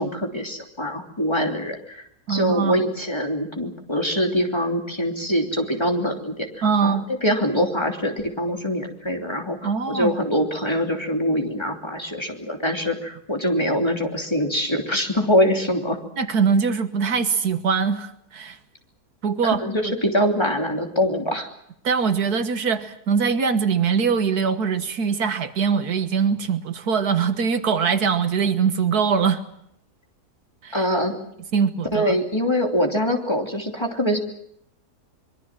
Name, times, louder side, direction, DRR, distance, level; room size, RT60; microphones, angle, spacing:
voice 1, 0.0-2.0 2.3-6.5 6.8-9.6 9.9-16.0 19.6-21.5 30.7-31.1 31.9-34.2, equal, 15° left, 2 dB, 3.1 m, -23 dB
voice 2, 2.3-2.8 6.6-7.1 9.6-10.2 16.2-18.6 19.2-19.9 21.8-29.4 30.6-30.8 31.5-32.2, right 6 dB, 75° right, 9 dB, 1.9 m, -22 dB
24.5 x 23.0 x 7.4 m, 0.72 s
omnidirectional pair, 1.7 m